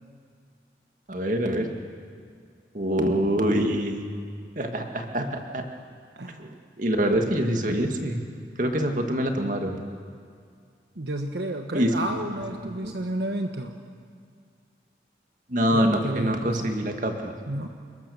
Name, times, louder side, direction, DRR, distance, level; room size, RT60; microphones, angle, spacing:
voice 1, 1.1-1.7 2.7-4.0 4.6-5.6 6.4-8.2 8.6-9.8 11.7-12.4 12.8-12.9 15.5-17.3, equal, 45° right, 4 dB, 2.1 m, -25 dB
voice 2, 6.2-6.6 10.9-13.8 15.7-16.8 17.5-17.7, right 1 dB, 70° right, 4 dB, 1.3 m, -31 dB
29.5 x 20.0 x 7.1 m, 2.2 s
head